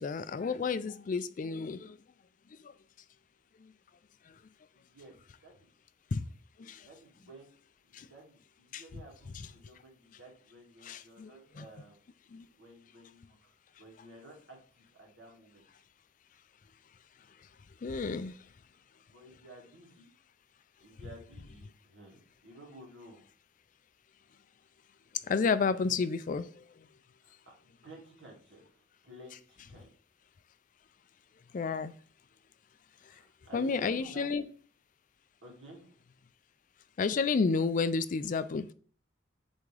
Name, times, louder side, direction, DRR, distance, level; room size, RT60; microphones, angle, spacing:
voice 1, 0.0-2.0 2.6-2.7 3.6-3.7 4.3-4.4 6.1-6.2 6.6-6.9 7.9-8.1 8.7-9.0 9.3-9.5 10.8-11.7 12.3-12.5 17.8-18.4 25.2-26.9 31.5-31.9 33.0-33.2 33.5-34.4 37.0-38.7, left 4 dB, 45° left, 14 dB, 0.4 m, -31 dB
voice 2, 4.8-5.1 5.4-5.7 6.8-7.6 7.8-12.0 12.6-15.6 19.1-20.1 20.8-23.3 27.2-27.4 27.6-29.9 33.0-34.5 35.4-36.0, right 1 dB, 80° right, -1 dB, 2.2 m, -53 dB
8.1 x 3.6 x 3.3 m, 0.44 s
head